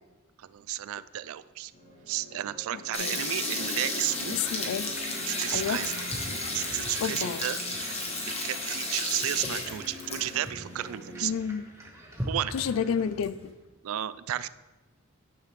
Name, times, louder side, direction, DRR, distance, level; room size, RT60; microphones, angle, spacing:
voice 1, 0.4-1.7 2.1-4.3 5.2-5.9 6.5-11.3 12.3-12.5 13.8-14.5, right 13 dB, 75° right, 0.3 m, -33 dB
sound 1, 1.7-11.3, equal, 50° left, 2.8 m, -46 dB
voice 2, 2.7-3.2 4.3-4.9 5.5-5.9 7.0-7.5 11.2-11.7 12.5-13.5, left 7 dB, 75° left, 0.3 m, -30 dB
sound 2, 2.9-10.4 10.8-10.9 11.1-11.2 11.8-11.9 12.2-13.2, left 2 dB, 30° left, 1.1 m, -34 dB
sound 3, 4.1-13.4, right 1 dB, 15° right, 1.0 m, -42 dB
10.0 x 6.8 x 3.1 m
head